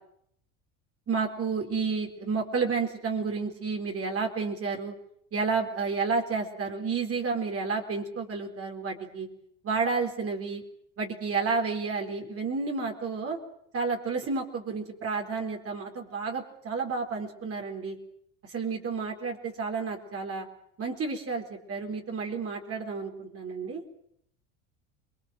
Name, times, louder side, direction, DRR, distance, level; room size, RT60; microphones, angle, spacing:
voice 1, 1.1-4.9 5.3-9.3 9.6-10.6 11.0-13.4 13.7-18.0 18.4-20.5 20.8-23.8, right 4 dB, 35° right, 2 dB, 4.4 m, -31 dB
27.0 x 21.0 x 7.7 m, 0.71 s
supercardioid pair, 90°, 38 cm